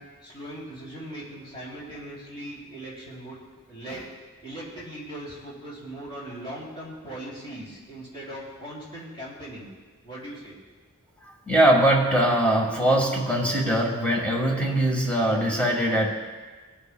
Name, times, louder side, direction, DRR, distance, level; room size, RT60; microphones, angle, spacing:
voice 1, 0.0-3.4 3.7-4.1 4.4-9.7 10.0-10.6, right 1 dB, 20° left, -5 dB, 2.9 m, -39 dB
voice 2, 11.5-16.1, right 1 dB, 5° left, -2 dB, 1.5 m, -21 dB
21.0 x 8.2 x 2.2 m, 1.4 s
head